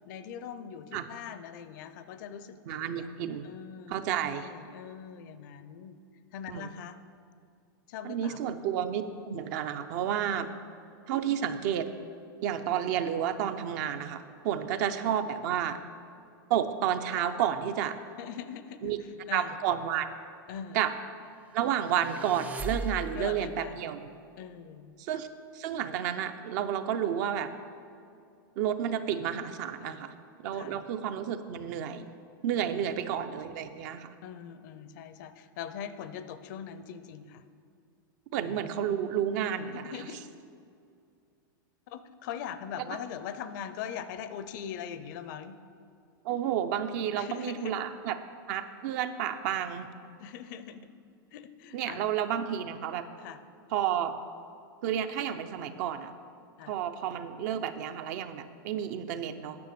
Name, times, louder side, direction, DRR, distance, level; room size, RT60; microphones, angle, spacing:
voice 1, 0.1-3.1 3.4-6.0 6.3-7.0 7.9-8.4 14.7-14.8 18.2-19.6 20.5-20.8 23.1-23.8 24.4-25.0 29.8-30.0 30.5-30.8 32.7-33.0 34.2-37.4 38.4-38.7 39.6-40.2 41.9-45.6 47.2-47.8 50.2-50.9 51.3-52.2 53.2-53.4 56.6-56.7, left 8 dB, 55° left, 12 dB, 0.6 m, -42 dB
voice 2, 2.7-3.5 3.9-4.5 6.5-6.7 8.0-10.5 11.1-11.9 12.4-15.8 16.5-18.0 18.8-19.0 19.3-20.1 20.7-20.9 21.5-24.1 25.0-25.3 25.5-27.5 28.6-30.1 30.4-32.1 32.4-34.1 38.3-39.9 46.2-48.2 48.5-49.9 51.7-53.1 53.7-54.1 54.8-56.1 56.7-59.6, right 9 dB, 55° right, 9 dB, 0.7 m, -31 dB
sound 1, 21.7-23.5, right 3 dB, 15° right, 0.3 m, -38 dB
9.5 x 6.5 x 6.8 m, 2.4 s
supercardioid pair, 140°, 12 cm